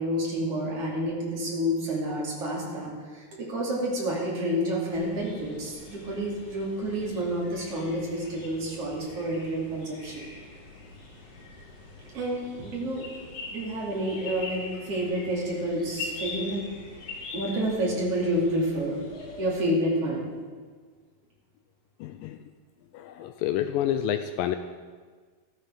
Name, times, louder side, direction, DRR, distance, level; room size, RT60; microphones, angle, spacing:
voice 1, 0.0-10.3 12.1-13.0 13.5-16.6 17.3-19.0 19.4-20.2, equal, 40° right, -4 dB, 3.4 m, -29 dB
sound 1, 4.9-19.6, left 3 dB, 70° left, 5.6 m, -43 dB
voice 2, 22.0-22.4 22.9-24.6, left 11 dB, 85° left, 8 dB, 2.0 m, -28 dB
14.0 x 13.0 x 3.8 m, 1.5 s
omnidirectional pair, 4.4 m